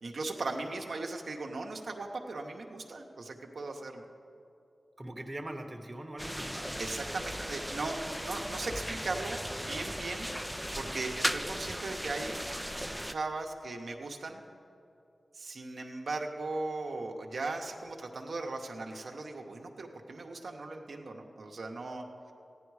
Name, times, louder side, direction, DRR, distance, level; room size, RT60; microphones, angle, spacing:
voice 1, 0.0-4.1 6.8-12.4 13.1-14.4 15.3-22.3, right 3 dB, 75° right, 1 dB, 0.8 m, -38 dB
voice 2, 5.0-6.8 10.5-10.6, right 1 dB, 25° right, 3 dB, 0.9 m, -42 dB
sound 1, 6.2-13.1, equal, ahead, 0.4 m, -37 dB
14.5 x 9.9 x 4.7 m, 2.7 s
wide cardioid pair, 80°, 0 cm